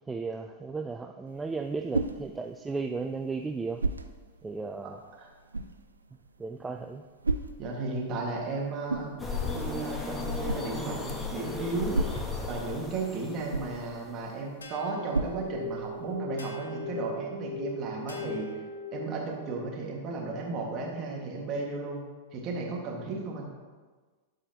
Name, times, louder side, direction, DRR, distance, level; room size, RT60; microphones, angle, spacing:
voice 1, 0.1-3.8 4.4-5.0 6.4-7.0, right 4 dB, 15° right, 5 dB, 0.3 m, -35 dB
sound 1, 1.3-16.2, right 3 dB, 85° right, 0.4 m, -37 dB
voice 2, 4.8-5.3 7.6-9.1 9.5-12.0 12.5-18.5 18.9-22.0 22.3-23.5, right 3 dB, 40° right, -1 dB, 1.7 m, -34 dB
sound 2, 9.2-14.3, left 4 dB, 10° left, 1.0 m, -35 dB
sound 3, 14.6-19.4, left 2 dB, 85° left, 0.8 m, -38 dB
12.0 x 4.9 x 2.9 m, 1.4 s
figure-of-eight pair, 100°, 0 cm